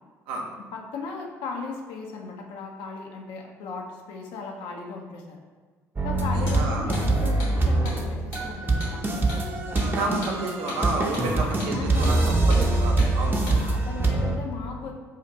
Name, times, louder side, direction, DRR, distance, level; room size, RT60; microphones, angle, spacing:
voice 1, 0.6-5.4 6.0-10.0 11.1-12.8 13.4-15.0, left 4 dB, 70° left, 1 dB, 0.4 m, -37 dB
sound 1, 6.0-14.4, right 2 dB, 20° right, 0.6 m, -24 dB
voice 2, 6.3-6.9 10.0-13.4, right 2 dB, 70° right, 0 dB, 0.6 m, -30 dB
Hammer, 6.4-6.6 6.9-7.1 7.4-7.5 7.9-8.0 8.3-8.5 8.8-9.0 9.3-9.4 9.8-9.9 10.2-10.4 10.7-10.8 11.1-11.3 11.6-11.8 12.0-12.2 12.5-12.7 13.0-13.1 13.5-13.6, left 1 dB, 85° left, 1.3 m, -36 dB
2.6 x 2.4 x 4.1 m, 1.5 s
hypercardioid pair, 55°, 9 cm